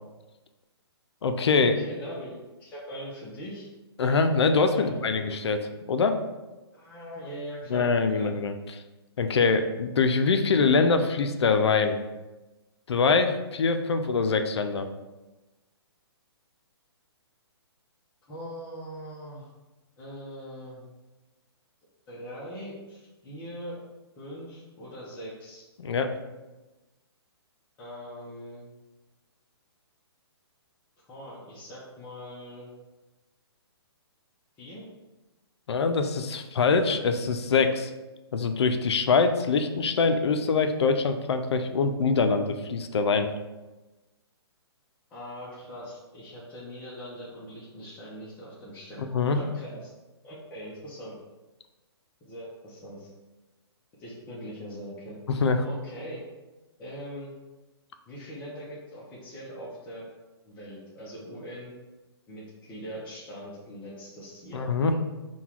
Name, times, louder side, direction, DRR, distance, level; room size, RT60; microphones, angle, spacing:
voice 1, 1.2-1.8 4.0-6.2 7.7-8.5 9.2-12.0 12.9-14.9 25.8-26.1 35.7-37.9 38.3-43.3 49.1-49.4 55.3-55.6 64.5-64.9, left 4 dB, 75° left, 8 dB, 0.4 m, -24 dB
voice 2, 1.7-3.7 4.7-5.2 6.7-8.3 18.3-19.5 20.0-20.8 22.1-23.8 24.2-25.7 27.8-28.7 31.1-32.7 34.6-34.9 45.1-49.9 50.2-51.2 52.2-53.1 54.0-55.2 55.6-56.2 56.8-57.3 58.1-60.1 60.4-61.7 62.3-64.9, equal, 10° left, -8 dB, 0.5 m, -41 dB
3.8 x 2.2 x 4.4 m, 1.1 s
hypercardioid pair, 155°, 14 cm